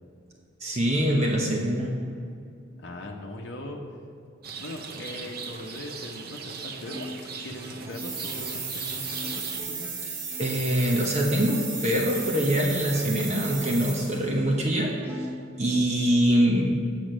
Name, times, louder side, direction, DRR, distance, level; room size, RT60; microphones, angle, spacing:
voice 1, 0.6-1.9 10.4-15.3 15.6-16.7, equal, 35° right, -1 dB, 1.0 m, -24 dB
voice 2, 2.8-3.8 4.6-7.1 7.4-9.9, left 1 dB, 60° left, -1 dB, 0.9 m, -40 dB
Rain, 4.4-9.6, right 5 dB, 50° right, 0.7 m, -39 dB
Plucked string instrument, 6.8-11.8 12.1-13.8 14.3-14.4 15.0-16.2, left 1 dB, 10° right, 0.7 m, -43 dB
sound 1, 7.9-14.3, right 5 dB, 80° right, 2.6 m, -35 dB
8.6 x 6.2 x 6.2 m, 2.5 s
head